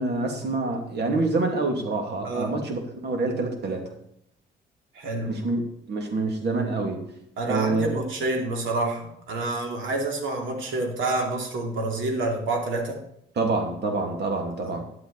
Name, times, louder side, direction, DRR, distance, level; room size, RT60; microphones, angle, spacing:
voice 1, 0.0-3.9 5.2-5.6 5.9-7.0 7.5-8.0 13.4-14.8, right 3 dB, 60° right, 3 dB, 2.6 m, -26 dB
voice 2, 4.9-5.4 7.4-13.0 14.6-14.8, right 2 dB, 75° right, 1 dB, 2.7 m, -28 dB
11.5 x 8.5 x 4.1 m, 0.73 s
cardioid pair, 90°, 20 cm